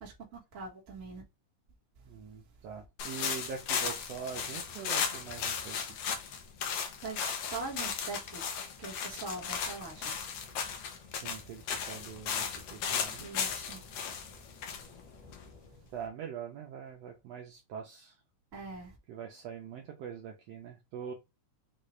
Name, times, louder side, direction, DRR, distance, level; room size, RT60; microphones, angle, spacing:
voice 1, 0.0-1.2 7.0-8.4 8.8-10.3 13.2-14.0 14.4-14.7 18.5-19.0, right 4 dB, 40° right, 1.1 m, -43 dB
voice 2, 2.1-6.1 11.1-13.2 15.9-18.1 19.1-21.1, right 7 dB, 80° right, 1.5 m, -43 dB
sound 1, 3.0-15.8, left 7 dB, 70° left, 1.6 m, -36 dB
6.4 x 2.5 x 3.1 m
omnidirectional pair, 3.6 m